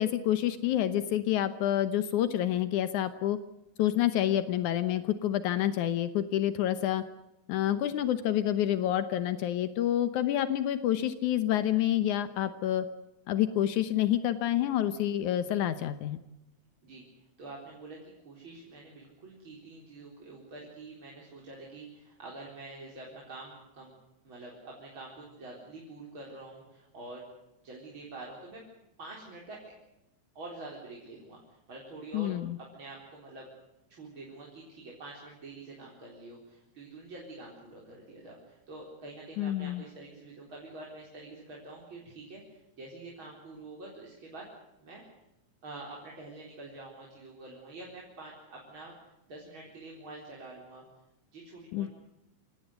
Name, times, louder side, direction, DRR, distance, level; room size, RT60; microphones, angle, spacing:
voice 1, 0.0-3.4 3.8-7.0 7.5-12.9 13.3-16.2 32.1-32.6 39.4-39.8 51.7-51.9, left 12 dB, 80° left, 11 dB, 2.5 m, -28 dB
voice 2, 16.8-18.0 18.2-23.9 24.2-27.2 27.6-28.6 29.0-29.7 30.3-32.3 32.6-33.5 33.9-44.5 44.8-45.0 45.6-48.9 49.3-50.8 51.3-51.9, right 2 dB, 40° right, -2 dB, 4.9 m, -46 dB
27.0 x 18.0 x 8.1 m, 0.93 s
omnidirectional pair, 3.4 m